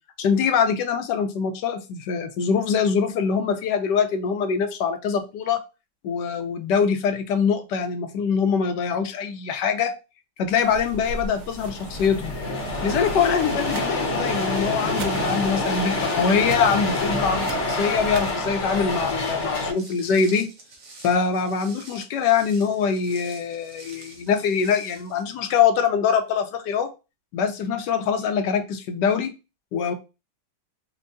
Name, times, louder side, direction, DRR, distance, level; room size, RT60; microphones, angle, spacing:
voice 1, 0.2-5.6 6.0-9.9 10.4-12.3 12.8-20.5 21.0-26.9 27.3-29.3 29.7-29.9, left 6 dB, 75° left, 7 dB, 1.2 m, -23 dB
sound 1, 10.6-18.6, right 3 dB, 75° right, 0.8 m, -40 dB
sound 2, 11.0-11.1 11.2-19.7, left 2 dB, 50° left, 0.9 m, -26 dB
Walk footsteps, 19.7-25.2, right 3 dB, 50° right, 1.0 m, -46 dB
4.5 x 2.2 x 2.6 m, 0.29 s
omnidirectional pair, 1.9 m